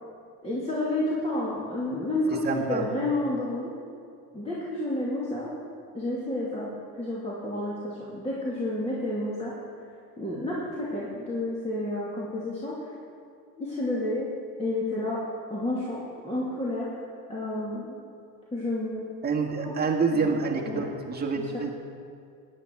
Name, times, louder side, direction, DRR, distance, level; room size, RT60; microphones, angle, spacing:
voice 1, 0.4-3.7 4.3-5.5 5.9-9.5 10.2-12.8 13.6-14.3 14.6-15.2 15.5-16.9 17.3-17.9 18.5-19.1 19.6-19.7 20.1-20.3 20.7-20.8 21.4-21.5, left 1 dB, 15° left, -7 dB, 2.6 m, -30 dB
voice 2, 2.4-2.8 19.2-21.7, right 4 dB, 25° right, 0 dB, 1.8 m, -27 dB
14.5 x 10.0 x 4.7 m, 2.4 s
supercardioid pair, 105°, 40 cm